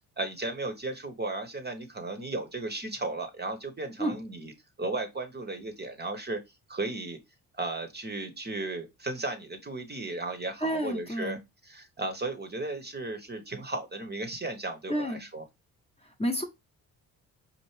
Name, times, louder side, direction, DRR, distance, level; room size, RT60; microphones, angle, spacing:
voice 1, 0.2-4.5 4.8-6.4 6.7-7.2 7.5-11.4 11.6-15.4, right 2 dB, 25° right, 0.9 m, -35 dB
voice 2, 10.6-11.4 14.9-15.2 16.2-16.4, equal, 15° left, 0.9 m, -30 dB
4.4 x 2.5 x 3.2 m
hypercardioid pair, 50°, 44 cm